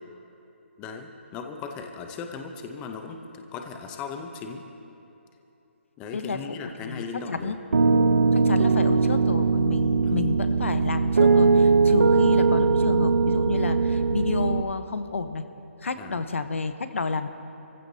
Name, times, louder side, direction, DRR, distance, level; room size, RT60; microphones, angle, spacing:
voice 1, 0.8-4.7 6.0-7.5 10.0-10.2 16.0-16.2, left 5 dB, 15° left, 4 dB, 0.7 m, -37 dB
voice 2, 6.1-7.6 8.3-15.4 15.8-17.3, left 4 dB, 85° left, 10 dB, 1.0 m, -30 dB
Piano, 7.7-14.6, right 4 dB, 80° right, 0.8 m, -20 dB
25.0 x 15.5 x 2.8 m, 2.9 s
hypercardioid pair, 165°, 7 cm